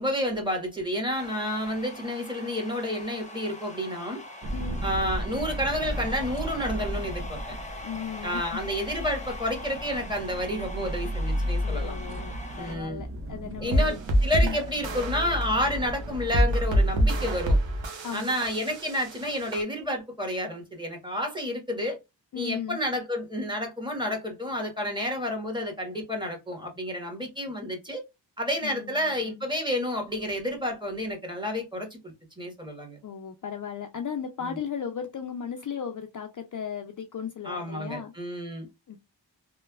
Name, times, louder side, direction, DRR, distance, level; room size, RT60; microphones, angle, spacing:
voice 1, 0.0-4.2 4.8-7.5 8.2-12.0 12.6-13.0 13.6-17.6 18.1-22.0 22.3-28.0 28.4-33.0 34.4-34.6 37.4-38.7, equal, 10° right, 1.2 m, -30 dB
sound 1, 1.1-12.8, left 1 dB, 15° left, 0.8 m, -43 dB
sound 2, 4.4-17.1, equal, 30° right, 0.5 m, -34 dB
voice 2, 7.8-8.6 11.6-14.0 14.4-14.6 18.0-18.4 22.3-22.8 28.6-29.4 33.0-38.1 38.9-39.0, left 7 dB, 45° left, 0.5 m, -36 dB
sound 3, 13.7-19.6, right 1 dB, 75° right, 0.8 m, -26 dB
3.2 x 2.2 x 2.2 m
cardioid pair, 55°, 44 cm